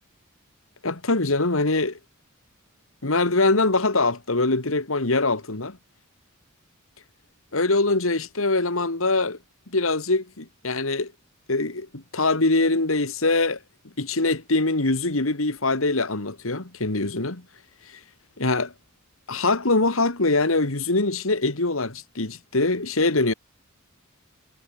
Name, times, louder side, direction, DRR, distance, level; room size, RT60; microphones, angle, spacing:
voice 1, 0.8-2.0 3.0-5.8 7.5-9.4 9.7-11.1 11.5-13.6 14.0-17.4 18.4-18.7 19.3-23.3, left 2 dB, 65° left, 2.2 m, -23 dB
head